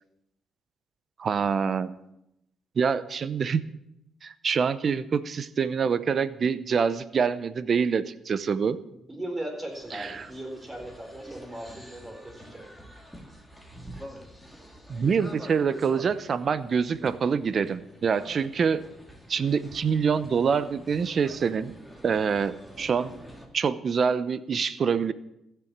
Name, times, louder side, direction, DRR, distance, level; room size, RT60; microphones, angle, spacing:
voice 1, 1.2-1.9 2.8-3.6 4.2-8.8 9.9-10.3 14.9-18.8 19.3-21.7 22.0-23.2 23.5-25.1, right 6 dB, 50° right, 16 dB, 0.8 m, -26 dB
voice 2, 9.1-12.6, right 1 dB, 20° right, 2 dB, 4.4 m, -38 dB
sound 1, 9.7-23.5, equal, ahead, 2.6 m, -47 dB
15.0 x 7.0 x 8.6 m, 0.83 s
cardioid pair, 90°, 0 cm